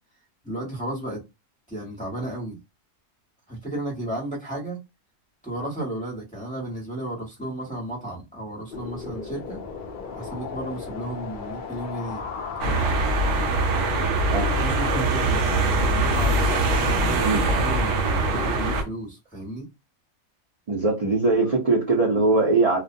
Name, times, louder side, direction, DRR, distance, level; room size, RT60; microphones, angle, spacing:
voice 1, 0.4-1.2 1.7-2.6 3.5-4.8 5.4-9.6 10.1-12.2 12.6-12.9 14.6-19.7, right 1 dB, 5° left, 0.8 m, -33 dB
sound 1, 8.7-18.9, left 5 dB, 75° left, 0.4 m, -36 dB
sound 2, 12.6-18.8, right 2 dB, 65° right, 0.9 m, -23 dB
voice 2, 20.7-22.8, right 3 dB, 45° right, 0.5 m, -21 dB
2.4 x 2.2 x 2.6 m
omnidirectional pair, 1.5 m